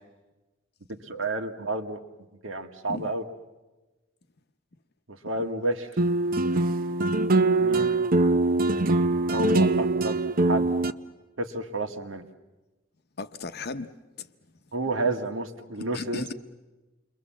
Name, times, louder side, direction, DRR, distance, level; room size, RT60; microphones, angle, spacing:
voice 1, 1.1-2.0 2.4-3.2 5.2-5.9 7.6-8.0 9.3-10.2 10.5-10.7 11.4-12.2 14.7-16.2, right 2 dB, 80° right, 1.8 m, -30 dB
sound 1, 6.0-10.9, right 2 dB, 45° right, 0.8 m, -23 dB
voice 2, 13.2-14.3 15.9-16.3, left 3 dB, 55° left, 0.9 m, -36 dB
29.0 x 23.0 x 7.4 m
head